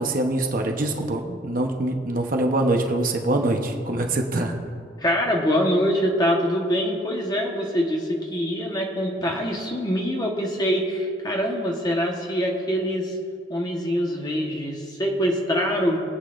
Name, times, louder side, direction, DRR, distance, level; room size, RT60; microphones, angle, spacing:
voice 1, 0.0-4.5, right 2 dB, 45° right, 2 dB, 0.9 m, -24 dB
voice 2, 5.0-13.2 13.5-16.0, equal, 20° left, 0 dB, 1.2 m, -24 dB
23.0 x 8.3 x 2.6 m, 2.3 s
head